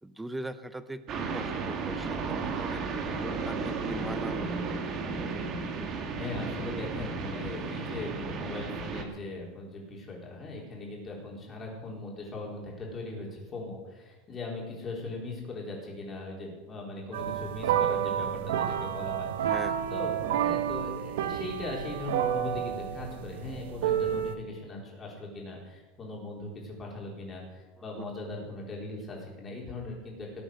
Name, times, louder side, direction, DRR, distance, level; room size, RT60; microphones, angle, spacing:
voice 1, 0.0-2.8 3.2-5.0 19.4-19.9 27.9-28.1, right 1 dB, 5° right, 12 dB, 0.6 m, -40 dB
sound 1, 1.1-9.0, right 4 dB, 30° right, 1.9 m, -34 dB
voice 2, 6.2-19.6 19.9-30.4, left 2 dB, 20° left, -2 dB, 4.1 m, -39 dB
sound 2, 17.1-24.3, right 10 dB, 90° right, 1.3 m, -30 dB
18.5 x 8.7 x 6.5 m, 1.2 s
supercardioid pair, 170°, 0 cm